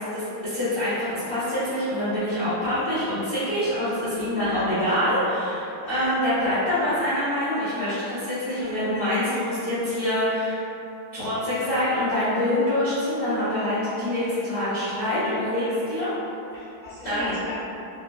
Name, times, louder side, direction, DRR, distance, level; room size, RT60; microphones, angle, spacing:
voice 1, 0.1-10.6 11.1-16.1 17.0-17.3, left 1 dB, 55° left, -15 dB, 0.5 m, -25 dB
voice 2, 5.8-6.2 8.5-8.8 16.5-17.5, left 1 dB, 55° right, -12 dB, 1.1 m, -37 dB
4.6 x 2.1 x 2.3 m, 2.9 s
omnidirectional pair, 2.4 m